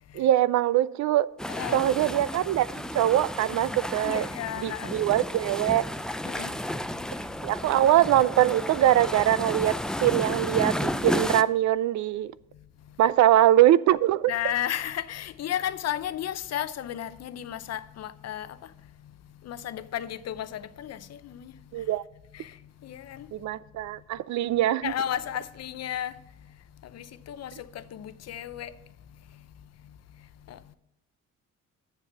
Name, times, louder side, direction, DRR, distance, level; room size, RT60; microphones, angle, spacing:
voice 1, 0.1-1.3 1.7-5.8 7.4-12.3 13.0-14.3 21.7-22.0 23.3-24.9, right 13 dB, 70° right, 0.4 m, -23 dB
sound 1, 1.4-11.4, left 1 dB, ahead, 0.4 m, -32 dB
voice 2, 1.5-1.9 4.0-4.9 6.2-6.5 14.3-18.5 19.5-21.5 22.4-22.5 22.8-23.3 24.8-26.1 26.9-28.7 30.5-30.7, left 11 dB, 60° left, 0.6 m, -33 dB
7.6 x 7.3 x 5.7 m
cardioid pair, 90°, 30 cm